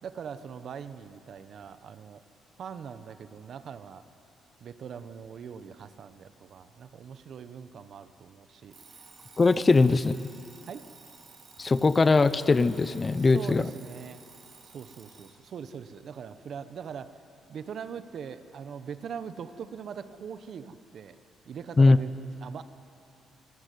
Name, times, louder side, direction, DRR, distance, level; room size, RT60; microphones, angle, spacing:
voice 1, 0.0-2.2 2.6-4.0 4.6-8.8 9.7-9.8 10.7-10.9 13.2-14.2 14.6-17.2 17.5-21.2 21.5-22.6, right 7 dB, 60° right, 11 dB, 1.1 m, -41 dB
Alarm, 8.7-15.4, right 4 dB, 45° right, 3.3 m, -53 dB
voice 2, 9.4-10.1 11.6-13.7 21.8-22.0, left 3 dB, 30° left, 14 dB, 0.8 m, -20 dB
25.5 x 18.0 x 9.5 m, 2.8 s
cardioid pair, 90°, 0 cm